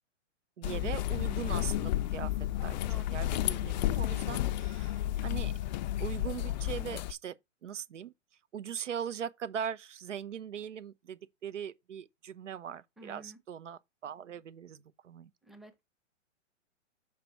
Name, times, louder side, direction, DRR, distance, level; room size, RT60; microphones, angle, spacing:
sound 1, 0.6-7.1, left 14 dB, 40° left, 0.4 m, -32 dB
voice 1, 0.6-2.3 2.6-5.5 6.0-7.4 7.6-8.1 8.5-15.3, right 8 dB, 80° right, 0.8 m, -40 dB
voice 2, 13.0-13.4 15.4-15.8, right 1 dB, ahead, 0.7 m, -51 dB
6.8 x 4.7 x 4.0 m
hypercardioid pair, 125°, 36 cm